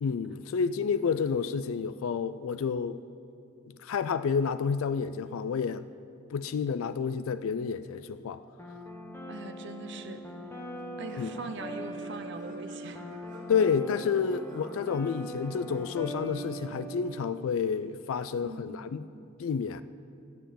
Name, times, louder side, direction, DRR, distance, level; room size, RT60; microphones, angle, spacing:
voice 1, 0.0-3.0 3.7-5.9 6.3-8.4 11.2-11.3 13.5-19.0 19.4-19.8, left 6 dB, 80° left, 14 dB, 0.4 m, -30 dB
sound 1, 8.6-17.3, right 1 dB, 10° left, 1.2 m, -41 dB
voice 2, 9.3-10.3 11.0-13.1 18.3-19.0, right 2 dB, 55° right, 8 dB, 0.8 m, -41 dB
Singing / Plucked string instrument, 10.1-15.7, equal, 40° right, 2.8 m, -53 dB
12.0 x 6.8 x 9.0 m, 2.5 s
head